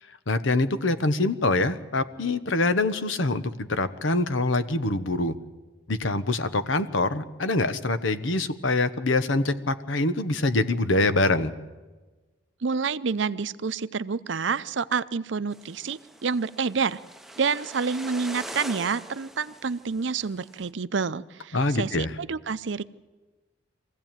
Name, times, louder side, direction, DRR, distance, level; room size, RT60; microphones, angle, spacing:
voice 1, 0.3-5.3 5.9-11.5 21.5-22.1, left 2 dB, 90° left, 12 dB, 1.2 m, -25 dB
voice 2, 12.6-17.0 17.4-22.8, right 5 dB, 70° right, 15 dB, 0.6 m, -28 dB
sound 1, 15.5-20.7, right 1 dB, ahead, 0.7 m, -43 dB
23.5 x 16.0 x 9.1 m, 1.2 s
head